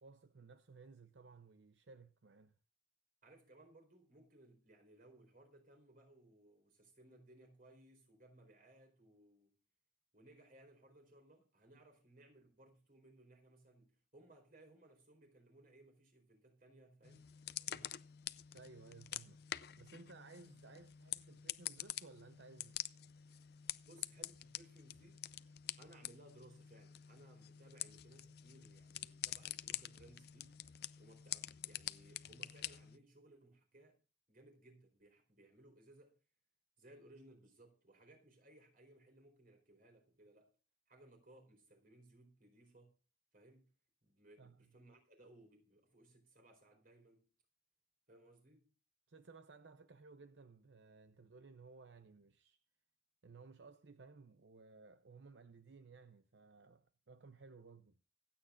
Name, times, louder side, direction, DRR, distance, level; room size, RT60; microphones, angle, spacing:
voice 1, 0.0-2.6 18.5-19.4 19.8-22.8 44.4-44.7 49.1-52.6 53.2-58.0, right 4 dB, 75° right, 0.7 m, -58 dB
voice 2, 3.2-9.5 10.1-17.3 17.7-18.0 23.8-25.3 25.8-30.6 31.0-34.0 34.3-36.2 36.8-40.5 40.9-43.0 43.3-43.7 44.0-47.3 48.1-48.7, right 1 dB, 50° right, 4.3 m, -63 dB
sound 1, 17.0-33.0, left 12 dB, 60° left, 0.6 m, -47 dB
25.0 x 8.6 x 2.5 m
head